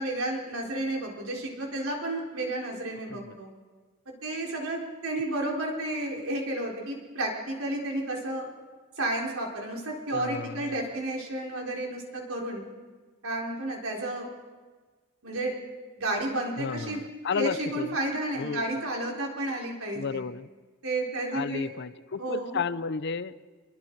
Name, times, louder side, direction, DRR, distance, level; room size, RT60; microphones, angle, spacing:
voice 1, 0.0-3.5 4.1-8.5 9.0-12.6 13.2-14.3 15.2-15.6 16.0-17.0 17.3-20.2 20.8-21.7 22.2-22.6, right 1 dB, 70° right, -1 dB, 4.0 m, -32 dB
voice 2, 10.1-10.8 16.6-18.0 18.4-18.6 19.9-20.5 21.3-23.3, left 5 dB, 50° left, 16 dB, 0.6 m, -33 dB
27.0 x 22.0 x 4.6 m, 1.4 s
head